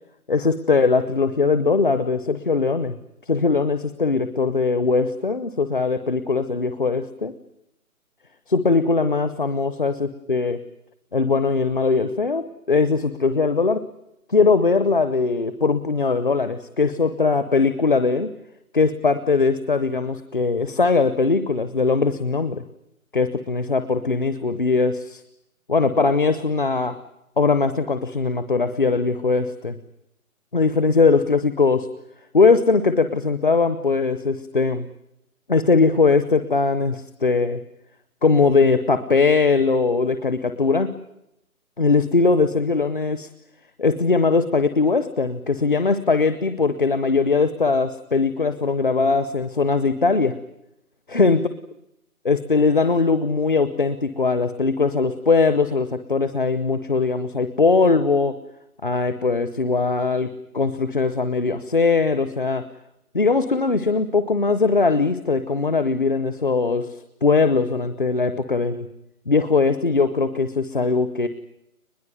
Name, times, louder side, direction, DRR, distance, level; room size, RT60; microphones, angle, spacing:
voice 1, 0.3-3.0 3.3-7.3 8.5-10.6 11.1-13.8 14.3-18.3 18.7-22.6 23.1-25.2 25.7-27.0 27.4-29.8 30.5-31.9 32.3-34.9 35.5-37.6 38.2-40.9 41.8-43.3 43.8-50.4 51.1-51.4 52.2-58.4 58.8-62.6 63.1-67.0 67.2-68.9 69.3-71.3, left 4 dB, 35° left, 11 dB, 0.9 m, -20 dB
22.0 x 21.5 x 9.3 m, 0.83 s
hypercardioid pair, 175°, 44 cm